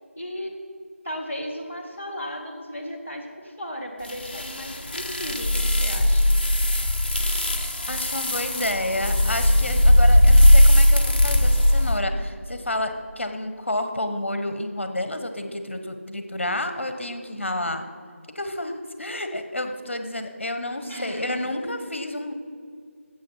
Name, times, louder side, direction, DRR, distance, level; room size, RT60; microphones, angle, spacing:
voice 1, 0.2-0.5 1.0-6.3 7.1-7.3 20.9-21.4, equal, 5° right, -8 dB, 0.3 m, -35 dB
sound 1, 4.1-12.0, left 1 dB, 40° left, 0.8 m, -18 dB
voice 2, 7.9-17.9 18.3-22.3, left 1 dB, 60° left, 7 dB, 1.2 m, -30 dB
12.5 x 8.0 x 5.5 m, 2.2 s
figure-of-eight pair, 170°, 7 cm